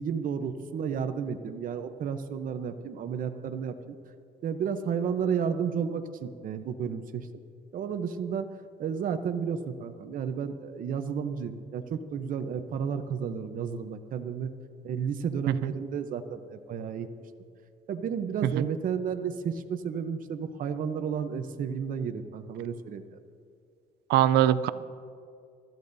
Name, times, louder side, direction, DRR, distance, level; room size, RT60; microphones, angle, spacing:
voice 1, 0.0-3.8 4.4-7.3 7.7-8.5 8.8-14.5 14.8-17.1 17.9-23.2, right 7 dB, 55° right, 8 dB, 0.9 m, -32 dB
voice 2, 24.1-24.7, right 12 dB, 85° right, 16 dB, 0.5 m, -22 dB
24.5 x 13.5 x 2.7 m, 2.3 s
cardioid pair, 110°, 17 cm